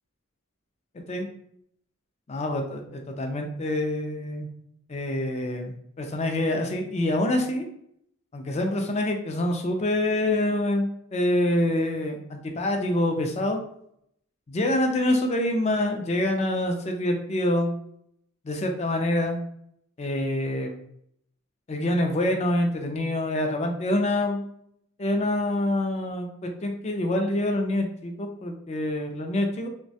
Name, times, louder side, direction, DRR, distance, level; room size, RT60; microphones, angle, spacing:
voice 1, 0.9-1.3 2.3-4.5 4.9-7.7 8.3-13.6 14.5-17.7 18.4-19.4 20.0-20.7 21.7-24.4 25.0-29.7, left 1 dB, 30° left, 3 dB, 0.4 m, -26 dB
3.0 x 2.2 x 2.7 m, 0.71 s
head